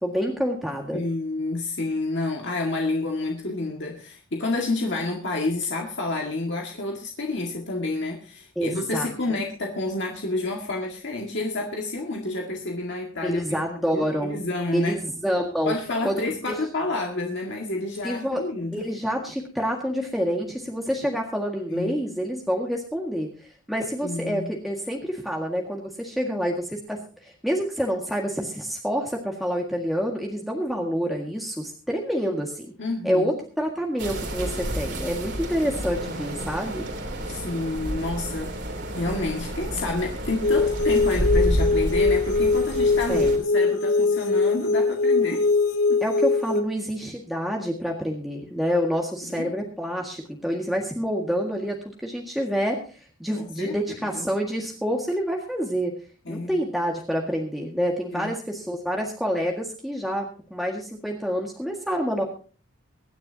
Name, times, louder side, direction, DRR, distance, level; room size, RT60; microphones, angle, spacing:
voice 1, 0.0-1.0 8.6-9.1 13.2-14.4 14.7-15.7 16.0-16.6 18.0-18.4 18.7-32.7 33.0-36.8 43.1-43.4 46.0-55.9 56.3-62.2, equal, ahead, -1 dB, 1.8 m, -27 dB
voice 2, 0.9-13.6 13.9-15.0 15.7-18.9 21.7-21.9 24.0-24.5 32.8-33.3 37.3-45.5 45.9-46.0 49.2-49.5 53.4-53.7 54.1-54.3 56.3-56.6 58.1-58.3, left 2 dB, 55° left, 1 dB, 2.0 m, -29 dB
sound 1, 34.0-43.4, equal, 50° right, 3.1 m, -30 dB
sound 2, 40.4-46.6, left 3 dB, 85° left, 1.8 m, -22 dB
24.0 x 10.5 x 2.8 m, 0.39 s
head